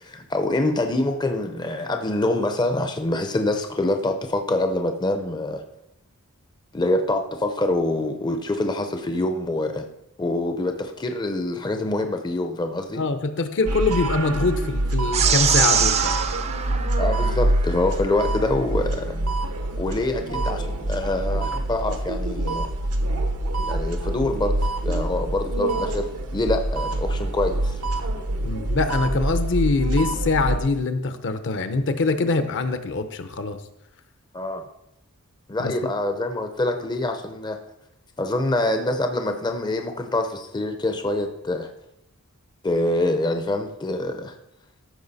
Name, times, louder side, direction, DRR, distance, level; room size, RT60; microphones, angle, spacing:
voice 1, 0.0-5.6 6.7-9.9 10.2-13.0 17.0-19.1 19.8-22.7 23.7-27.8 34.3-34.7 35.5-37.6 38.2-41.7 42.6-44.4, left 2 dB, 20° left, 6 dB, 0.6 m, -25 dB
voice 2, 13.0-16.2 28.4-33.6 35.6-35.7, left 3 dB, 55° left, 9 dB, 0.8 m, -24 dB
sound 1, 13.7-30.6, right 2 dB, 80° right, 1.0 m, -26 dB
sound 2, 15.1-17.8, right 7 dB, 30° right, 0.5 m, -23 dB
14.0 x 4.9 x 4.1 m, 0.84 s
head